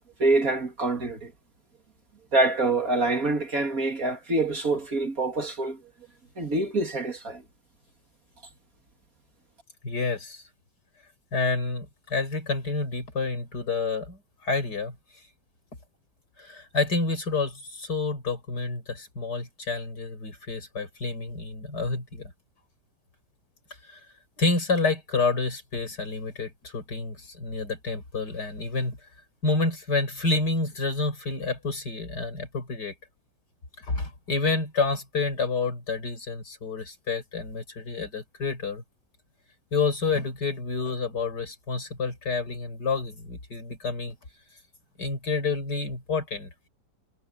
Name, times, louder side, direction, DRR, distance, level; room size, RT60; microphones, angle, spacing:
voice 1, 0.2-1.3 2.3-5.8 6.4-7.4, right 2 dB, 50° right, 2.9 m, -25 dB
voice 2, 9.8-10.4 11.3-15.0 16.4-22.3 23.8-24.0 24.4-29.0 29.4-32.9 33.8-38.8 39.7-44.2 45.0-46.5, left 3 dB, 60° left, 5.3 m, -29 dB
omnidirectional pair, 2.0 m